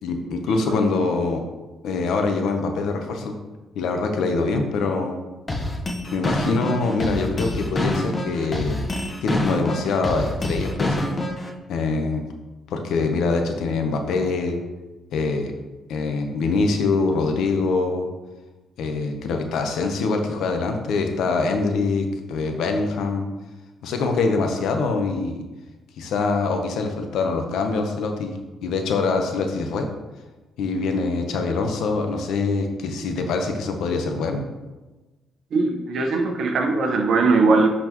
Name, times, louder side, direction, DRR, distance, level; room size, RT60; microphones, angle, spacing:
voice 1, 0.0-1.4 1.8-3.3 3.7-5.2 6.1-8.8 9.2-11.0 11.7-12.2 12.7-14.6 15.1-15.5 15.9-18.1 18.8-23.3 23.8-25.4 26.0-29.9 30.6-34.4, left 3 dB, 80° left, 4 dB, 0.9 m, -24 dB
sound 1, 5.5-11.5, left 1 dB, 35° left, 1.2 m, -26 dB
voice 2, 35.5-37.7, right 3 dB, 65° right, 3 dB, 1.1 m, -20 dB
11.0 x 4.3 x 3.1 m, 1.2 s
cardioid pair, 90°, 0 cm